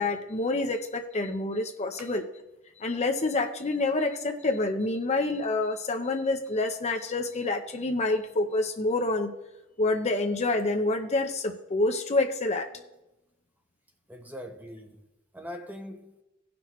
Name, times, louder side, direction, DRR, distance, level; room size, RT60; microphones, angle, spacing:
voice 1, 0.0-2.2 2.8-9.3 9.8-12.7, left 2 dB, 30° left, 0.7 m, -27 dB
voice 2, 14.1-15.0 15.3-16.1, equal, 10° right, 0.9 m, -42 dB
17.5 x 6.0 x 3.1 m
head